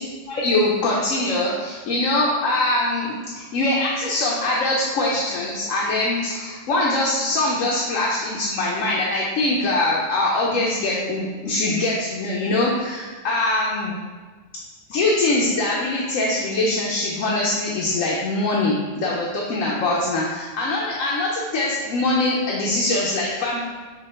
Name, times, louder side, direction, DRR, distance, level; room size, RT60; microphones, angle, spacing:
voice 1, 0.3-14.0 14.9-23.6, left 2 dB, 90° left, -4 dB, 1.1 m, -23 dB
5.1 x 2.2 x 4.2 m, 1.4 s
omnidirectional pair, 1.3 m